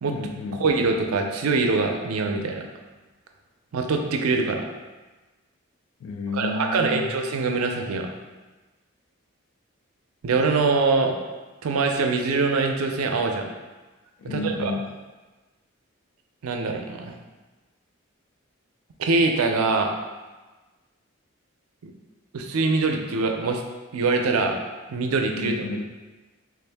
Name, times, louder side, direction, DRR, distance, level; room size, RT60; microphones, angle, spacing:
voice 1, 0.1-0.7 6.0-7.1 14.2-15.0 25.3-25.8, left 3 dB, 80° left, 5 dB, 0.3 m, -31 dB
voice 2, 0.6-2.6 3.7-4.6 6.3-8.1 10.2-11.1 11.6-13.5 14.2-14.7 16.4-17.1 19.0-19.9 21.8-21.9 22.3-23.6 23.9-24.6 24.9-25.6, right 3 dB, 85° right, 3 dB, 0.4 m, -23 dB
3.5 x 2.6 x 3.4 m, 1.2 s
head